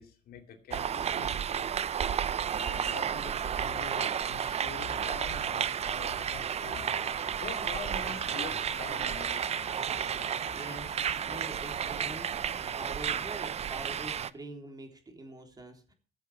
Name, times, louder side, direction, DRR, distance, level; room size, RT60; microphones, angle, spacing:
voice 1, 0.0-2.0 2.5-9.5, left 7 dB, 65° left, 5 dB, 2.5 m, -45 dB
sound 1, 0.7-14.3, right 8 dB, 40° right, 0.6 m, -32 dB
sound 2, 6.6-12.9, left 12 dB, 90° left, 2.5 m, -50 dB
sound 3, 9.0-13.4, left 6 dB, 40° left, 1.4 m, -55 dB
voice 2, 10.5-15.9, right 1 dB, 25° right, 4 dB, 3.5 m, -45 dB
14.5 x 7.8 x 7.5 m, 0.41 s
cardioid pair, 110°, 17 cm